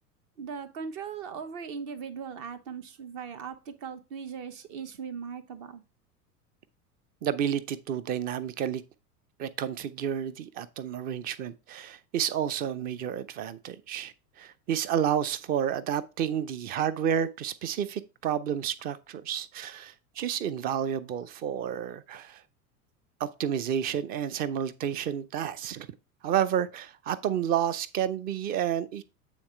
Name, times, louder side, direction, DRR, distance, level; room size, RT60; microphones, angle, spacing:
voice 1, 0.4-5.8, right 6 dB, 45° right, 1.2 m, -39 dB
voice 2, 7.2-8.8 9.4-22.4 23.2-25.9 26.2-29.0, right 9 dB, 20° right, 0.4 m, -30 dB
8.7 x 3.9 x 4.5 m
figure-of-eight pair, 85°, 47 cm